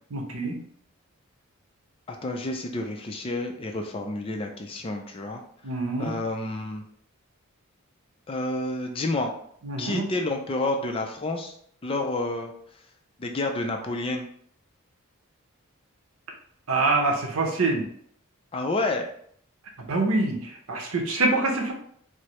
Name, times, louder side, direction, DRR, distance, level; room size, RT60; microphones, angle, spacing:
voice 1, 0.1-0.6 5.6-6.1 9.6-10.0 16.7-17.9 19.9-21.7, right 2 dB, 70° right, 2 dB, 0.7 m, -25 dB
voice 2, 2.1-5.4 6.0-6.8 8.3-9.3 9.8-11.6 11.8-12.5 13.2-14.3 18.5-19.1, left 2 dB, 25° left, 3 dB, 0.4 m, -29 dB
4.6 x 2.0 x 3.0 m, 0.64 s
head